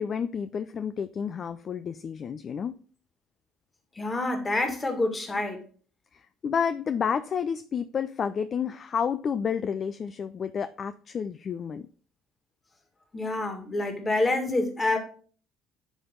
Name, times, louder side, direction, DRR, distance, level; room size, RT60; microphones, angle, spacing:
voice 1, 0.0-2.8 6.1-11.9, left 7 dB, 45° left, 0.3 m, -30 dB
voice 2, 4.0-5.6 13.1-15.0, left 2 dB, 25° left, 2.0 m, -27 dB
10.0 x 3.4 x 3.8 m
hypercardioid pair, 60°, 0 cm